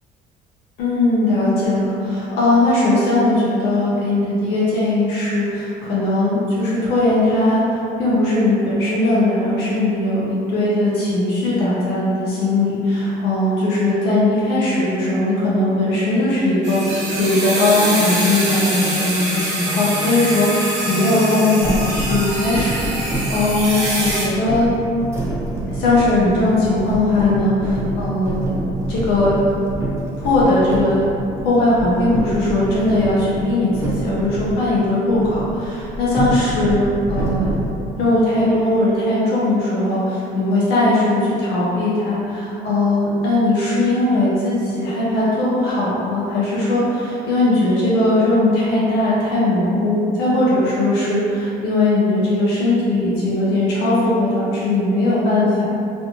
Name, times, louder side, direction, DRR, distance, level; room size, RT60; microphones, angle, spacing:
voice 1, 0.8-24.7 25.7-28.4 28.9-29.4 30.2-31.0 31.4-37.5 38.0-55.6, left 2 dB, 80° left, -8 dB, 0.6 m, -19 dB
sound 1, 16.6-24.2, right 1 dB, 45° right, 0.9 m, -24 dB
sound 2, 21.6-34.6 35.1-37.7, right 1 dB, 15° right, 0.6 m, -27 dB
2.5 x 2.2 x 2.8 m, 2.6 s
cardioid pair, 110°, 17 cm